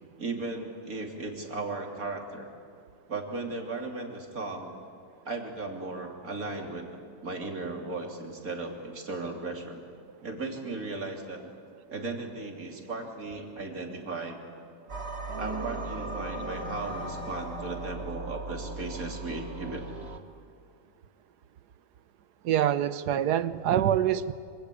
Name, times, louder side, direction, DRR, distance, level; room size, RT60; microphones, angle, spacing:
voice 1, 0.2-2.5 3.1-4.7 5.2-7.0 7.2-9.8 10.2-11.5 11.9-14.4 15.3-19.9, right 3 dB, 60° right, 2 dB, 3.4 m, -36 dB
sound 1, 14.9-20.2, right 3 dB, 40° right, 1.8 m, -39 dB
sound 2, 15.3-19.2, right 1 dB, 45° left, 6.9 m, -41 dB
voice 2, 22.4-24.3, right 10 dB, 80° right, 14 dB, 1.4 m, -25 dB
26.0 x 25.5 x 8.6 m, 2.4 s
omnidirectional pair, 1.7 m